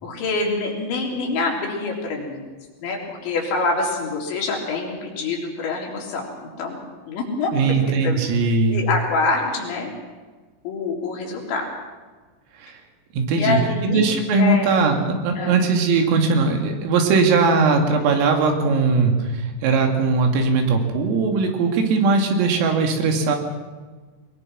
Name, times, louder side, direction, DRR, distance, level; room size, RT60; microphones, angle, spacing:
voice 1, 0.0-2.5 2.8-6.8 7.1-8.2 8.7-9.9 10.6-11.7 13.3-14.0 14.4-14.8 15.4-15.6, left 3 dB, 65° left, -1 dB, 5.7 m, -25 dB
voice 2, 7.5-8.8 12.6-12.7 13.1-23.4, right 4 dB, 85° right, 3 dB, 4.9 m, -19 dB
22.0 x 21.5 x 6.1 m, 1.4 s
omnidirectional pair, 5.8 m